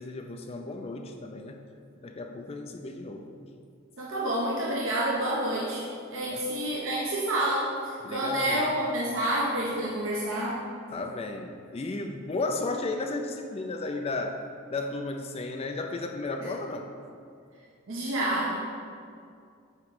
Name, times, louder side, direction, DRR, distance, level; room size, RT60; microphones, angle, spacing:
voice 1, 0.0-1.6 2.0-3.3 6.3-6.4 8.0-8.9 10.9-16.9, left 2 dB, 30° left, 5 dB, 0.3 m, -34 dB
voice 2, 4.0-10.6 16.4-16.5 17.9-18.6, right 1 dB, 60° right, -5 dB, 0.8 m, -28 dB
8.0 x 3.0 x 5.2 m, 2.4 s
head